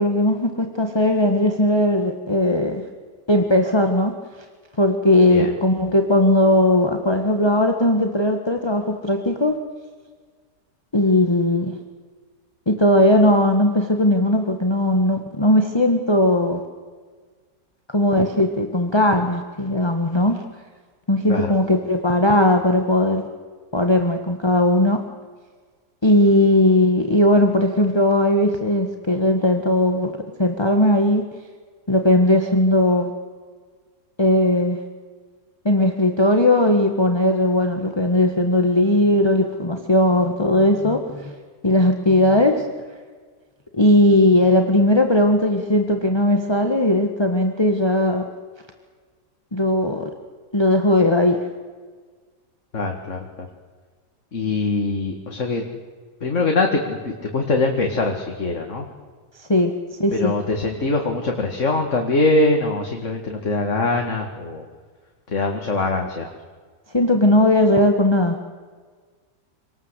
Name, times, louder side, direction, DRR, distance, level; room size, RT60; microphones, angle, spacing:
voice 1, 0.0-2.8 3.3-4.1 4.8-9.6 10.9-11.7 12.7-16.6 17.9-20.4 21.1-23.2 23.7-25.0 26.0-30.1 30.4-31.2 31.9-33.1 34.2-34.8 35.6-41.3 41.6-42.7 43.7-48.2 49.5-50.1 50.5-51.4 59.4-59.7 60.0-60.3 66.9-68.4, left 1 dB, 15° left, 4 dB, 1.6 m, -18 dB
voice 2, 52.7-53.2 54.3-55.6 56.2-58.9 60.1-64.6 65.3-66.3, left 2 dB, 45° left, 2 dB, 2.4 m, -22 dB
26.5 x 19.5 x 8.2 m, 1.5 s
omnidirectional pair, 1.8 m